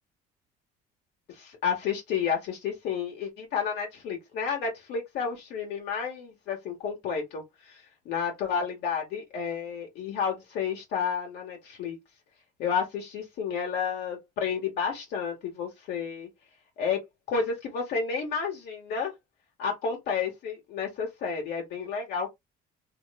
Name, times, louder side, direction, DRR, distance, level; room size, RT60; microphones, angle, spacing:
voice 1, 1.3-12.0 12.6-16.3 16.8-19.1 19.6-22.3, left 6 dB, 80° left, 1.5 m, -31 dB
3.1 x 3.0 x 2.3 m
cardioid pair, 110°, 17 cm